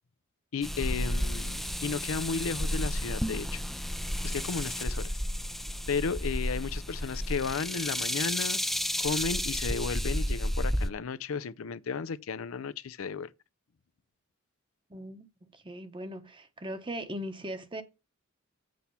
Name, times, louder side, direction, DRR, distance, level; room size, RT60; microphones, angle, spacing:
voice 1, 0.5-3.6 4.2-5.1 5.9-8.6 9.0-13.3, left 5 dB, 85° left, 0.5 m, -34 dB
sound 1, 0.6-10.9, equal, ahead, 0.4 m, -32 dB
voice 2, 14.9-17.8, equal, 25° right, 1.0 m, -39 dB
7.8 x 4.3 x 6.9 m
head